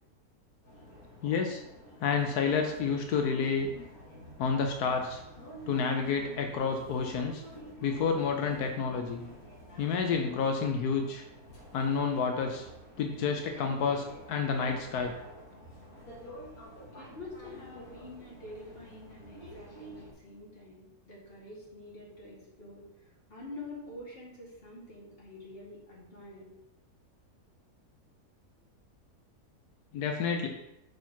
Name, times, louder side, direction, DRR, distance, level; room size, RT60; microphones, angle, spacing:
sound 1, 0.6-20.1, equal, 65° left, 2.4 m, -50 dB
voice 1, 1.2-1.6 2.0-3.7 4.4-5.2 5.7-7.4 7.8-9.2 9.8-11.2 11.7-12.7 13.0-15.1 29.9-30.5, left 5 dB, 85° left, 4 dB, 1.2 m, -29 dB
voice 2, 16.9-26.5, left 2 dB, 40° left, -5 dB, 2.3 m, -47 dB
6.1 x 4.5 x 5.7 m, 0.90 s
omnidirectional pair, 1.6 m